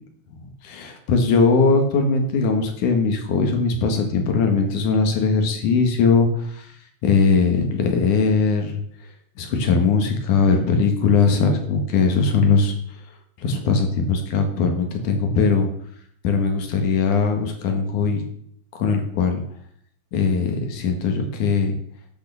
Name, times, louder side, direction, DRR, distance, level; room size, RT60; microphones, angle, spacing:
voice 1, 0.7-6.7 7.0-8.8 9.4-12.7 13.4-15.7 16.2-18.2 18.7-19.4 20.1-21.8, left 4 dB, 80° left, 4 dB, 3.2 m, -20 dB
11.5 x 6.4 x 7.0 m, 0.67 s
omnidirectional pair, 3.5 m